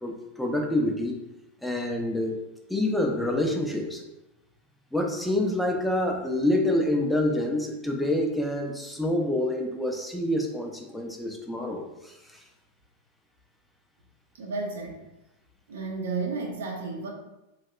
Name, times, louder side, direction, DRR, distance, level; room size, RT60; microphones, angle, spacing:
voice 1, 0.0-1.2 1.6-2.4 2.7-4.0 4.9-12.2, left 1 dB, ahead, 1 dB, 0.5 m, -27 dB
voice 2, 14.4-15.0 15.7-17.1, right 4 dB, 60° right, 1 dB, 0.6 m, -32 dB
3.2 x 2.7 x 2.2 m, 0.94 s
figure-of-eight pair, 90°, 0 cm